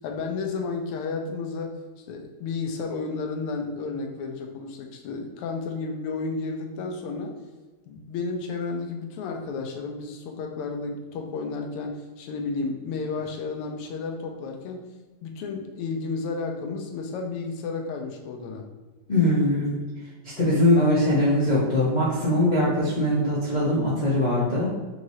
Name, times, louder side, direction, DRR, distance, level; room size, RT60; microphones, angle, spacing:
voice 1, 0.0-1.8 2.1-7.3 7.9-14.8 15.2-18.7, left 4 dB, 90° left, 3 dB, 1.6 m, -32 dB
voice 2, 19.1-19.7 20.4-24.7, left 1 dB, 70° left, -8 dB, 0.4 m, -21 dB
4.8 x 2.7 x 3.1 m, 1.3 s
omnidirectional pair, 2.4 m